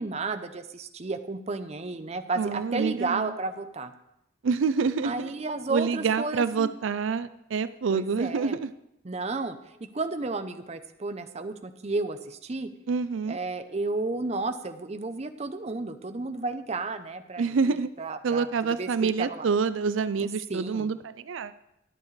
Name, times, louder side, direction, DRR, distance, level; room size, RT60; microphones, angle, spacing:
voice 1, 0.0-3.9 5.0-6.7 7.9-8.5 9.0-9.6 9.9-12.7 13.3-18.5 18.8-19.5 20.2-20.9, right 3 dB, 35° right, 9 dB, 0.6 m, -32 dB
voice 2, 2.4-3.3 4.4-5.3 5.7-8.7 12.9-13.4 17.4-17.9 18.2-21.5, right 5 dB, 85° right, 14 dB, 0.4 m, -27 dB
21.5 x 7.2 x 3.2 m, 0.82 s
head